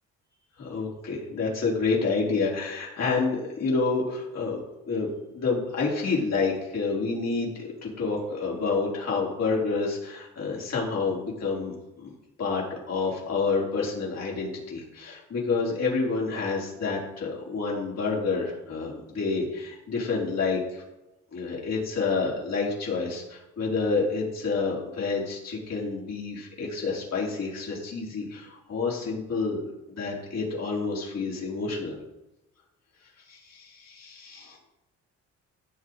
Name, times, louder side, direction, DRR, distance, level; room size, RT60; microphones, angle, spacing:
voice 1, 0.6-4.6 4.9-5.1 5.3-12.1 12.4-20.8 21.3-32.0 33.3-34.6, left 4 dB, 60° left, -4 dB, 4.4 m, -29 dB
16.0 x 7.2 x 4.8 m, 0.94 s
cardioid pair, 90°, 30 cm